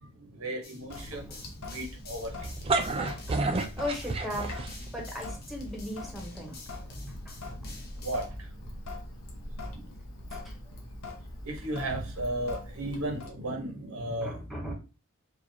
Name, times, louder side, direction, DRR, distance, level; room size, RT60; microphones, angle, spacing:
voice 1, 0.0-3.7 6.4-8.8 9.7-9.9 11.4-14.7, right 1 dB, 85° right, 1.1 m, -37 dB
sound 1, 0.6-8.3, left 2 dB, 45° left, 0.9 m, -48 dB
Sink (filling or washing) / Drip, 0.9-13.3, left 1 dB, 85° left, 1.0 m, -42 dB
voice 2, 1.0-1.4 2.7-4.7 4.9-6.5 6.9-7.0 7.3-7.4 10.3-10.6 14.2-14.7, left 1 dB, ahead, 0.9 m, -38 dB
sound 2, 2.4-5.0, right 3 dB, 25° right, 0.4 m, -29 dB
4.9 x 2.4 x 2.8 m
head